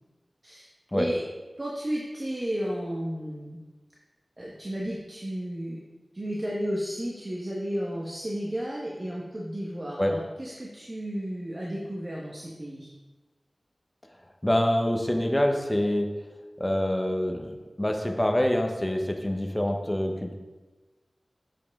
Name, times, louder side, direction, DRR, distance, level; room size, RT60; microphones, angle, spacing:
voice 1, 1.6-3.6 4.4-5.8 6.1-12.9, equal, 35° right, -4 dB, 1.2 m, -33 dB
voice 2, 14.4-16.1 16.6-17.5 17.8-20.3, left 1 dB, 15° left, 3 dB, 0.9 m, -25 dB
7.3 x 7.2 x 3.6 m, 1.2 s
wide cardioid pair, 65°, 0 cm